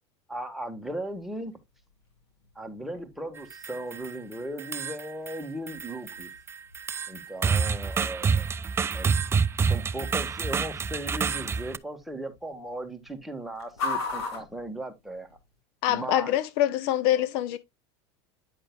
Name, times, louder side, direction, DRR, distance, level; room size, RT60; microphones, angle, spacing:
voice 1, 0.3-1.5 2.5-6.3 7.1-8.4 8.9-9.1 9.6-15.3 15.9-16.4, right 1 dB, ahead, 1.5 m, -37 dB
sound 1, 0.8-15.6, left 4 dB, 85° left, 3.4 m, -43 dB
sound 2, 3.4-4.2 4.6-5.4 5.7-11.8, right 5 dB, 20° right, 0.4 m, -28 dB
voice 2, 15.8-17.6, left 12 dB, 65° left, 0.7 m, -25 dB
9.4 x 6.2 x 2.4 m
supercardioid pair, 110°, 14 cm